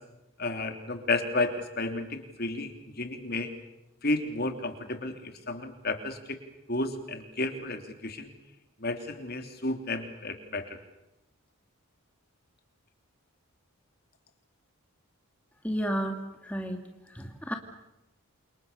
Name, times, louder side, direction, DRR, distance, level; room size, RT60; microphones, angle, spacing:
voice 1, 0.4-3.5 4.0-6.4 6.7-8.3 8.8-10.6, left 2 dB, 45° left, 6 dB, 3.3 m, -32 dB
voice 2, 15.6-16.2 16.5-16.8 17.2-17.5, equal, 5° left, 3 dB, 2.2 m, -31 dB
29.0 x 28.0 x 6.9 m, 0.92 s
head